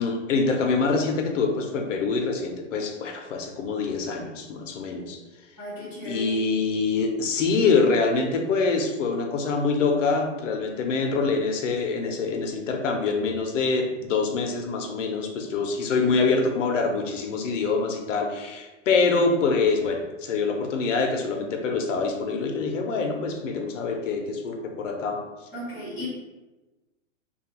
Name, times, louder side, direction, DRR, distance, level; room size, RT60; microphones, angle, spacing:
voice 1, 0.0-5.2 6.0-25.2, left 4 dB, 70° left, 3 dB, 0.6 m, -25 dB
voice 2, 5.6-6.3 16.1-16.3 25.5-26.1, equal, 15° right, -11 dB, 0.6 m, -36 dB
2.4 x 2.2 x 2.8 m, 1.1 s
hypercardioid pair, 165°, 38 cm